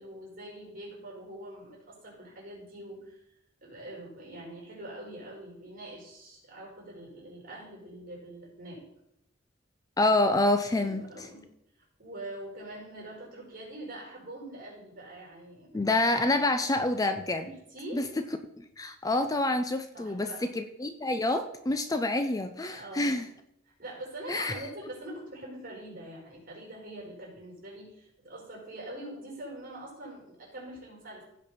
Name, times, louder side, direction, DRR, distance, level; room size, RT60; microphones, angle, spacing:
voice 1, 0.0-3.2 3.6-8.8 10.8-11.5 11.8-15.8 17.4-18.0 19.9-20.5 22.7-23.2 23.8-31.2, right 1 dB, 45° right, -2 dB, 4.6 m, -44 dB
voice 2, 10.0-11.3 15.7-17.5 17.9-18.1 18.6-23.3 24.3-24.6, left 2 dB, 20° left, 8 dB, 0.5 m, -27 dB
15.5 x 5.3 x 4.3 m, 0.80 s
head